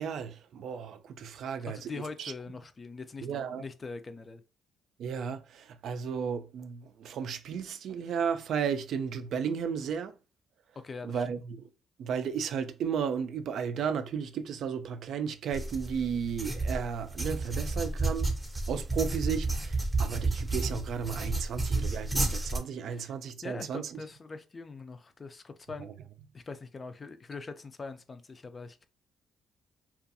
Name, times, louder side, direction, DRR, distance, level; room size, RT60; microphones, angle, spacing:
voice 1, 0.0-1.9 2.2-2.3 3.2-3.6 5.0-10.1 11.0-11.7 12.0-18.3 18.7-24.0 25.8-25.9, right 7 dB, 70° right, 0.3 m, -34 dB
voice 2, 1.7-3.3 3.6-4.4 10.8-11.2 22.9-23.1 23.4-25.9 26.3-28.9, left 4 dB, 35° left, 0.4 m, -42 dB
sound 1, 15.5-22.6, right 2 dB, 15° right, 0.6 m, -31 dB
2.5 x 2.3 x 2.6 m
cardioid pair, 90°, 0 cm